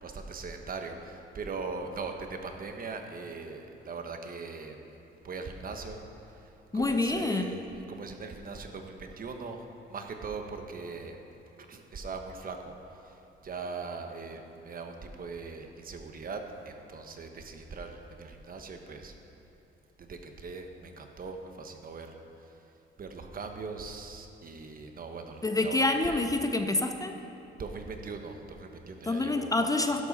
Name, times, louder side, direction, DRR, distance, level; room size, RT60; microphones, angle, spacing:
voice 1, 0.0-4.8 5.2-6.0 6.3-11.2 11.7-13.2 13.4-19.1 20.0-22.2 22.4-22.5 23.0-26.2 27.6-29.5, right 4 dB, 45° right, 5 dB, 1.2 m, -40 dB
voice 2, 6.7-7.6 25.4-27.2 29.0-30.1, left 2 dB, 15° left, 6 dB, 0.6 m, -27 dB
11.5 x 11.5 x 4.2 m, 2.9 s
cardioid pair, 90°, 20 cm